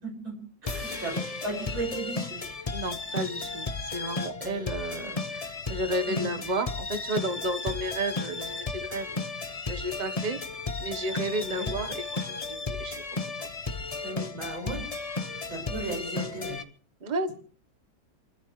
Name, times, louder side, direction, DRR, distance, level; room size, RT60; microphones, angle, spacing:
voice 1, 0.0-0.4 0.6-1.2 1.4-2.4 4.4-4.6 6.1-6.3 11.5-11.7 14.0-14.8 15.5-16.6, right 2 dB, 80° right, 1 dB, 7.2 m, -35 dB
sound 1, 0.6-16.6, left 3 dB, 30° left, 0.7 m, -34 dB
voice 2, 2.7-9.2 9.7-10.4 10.8-13.1 13.4-13.5 14.6-14.8 17.0-17.3, right 1 dB, 25° right, 8 dB, 1.1 m, -33 dB
29.0 x 14.0 x 3.3 m, 0.42 s
omnidirectional pair, 2.1 m